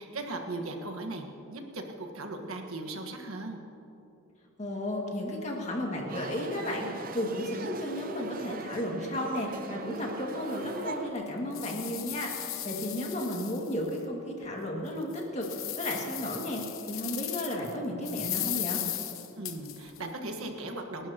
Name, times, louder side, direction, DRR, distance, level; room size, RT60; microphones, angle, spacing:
voice 1, 0.0-3.6 19.4-21.1, right 2 dB, 90° right, 4 dB, 1.5 m, -38 dB
voice 2, 4.6-6.9 7.1-18.8, left 1 dB, 30° left, -1 dB, 2.1 m, -33 dB
sound 1, 6.1-11.1, right 3 dB, 40° right, 0.6 m, -40 dB
sound 2, 9.9-10.0 10.5-10.6 11.1-14.0 14.4-14.5 15.0-17.7 18.0-20.0, left 13 dB, 75° left, 0.9 m, -37 dB
29.0 x 12.0 x 2.9 m, 2.9 s
head